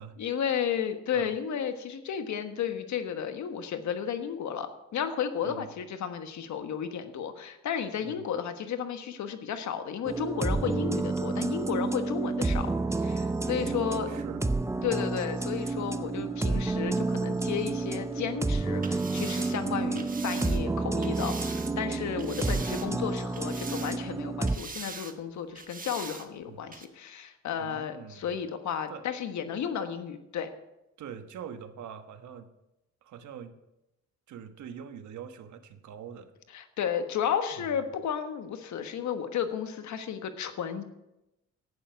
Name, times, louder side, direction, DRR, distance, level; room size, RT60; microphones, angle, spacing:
voice 1, 0.2-14.1 14.8-30.5 36.5-40.8, left 8 dB, 70° left, 8 dB, 1.4 m, -33 dB
sound 1, 10.0-24.6, right 3 dB, 10° right, 0.5 m, -30 dB
voice 2, 13.5-14.4 19.6-20.0 22.4-23.1 26.5-26.6 27.6-28.3 28.9-29.0 31.0-32.5 33.0-33.6 34.3-36.3 37.6-37.8, right 8 dB, 70° right, 9 dB, 1.2 m, -44 dB
sound 2, 18.7-21.7 22.2-23.0 23.3-24.2 24.5-25.2 25.6-26.3 26.7-26.9, right 4 dB, 30° right, 1.3 m, -42 dB
11.0 x 9.1 x 5.9 m, 0.90 s
cardioid pair, 90°, 30 cm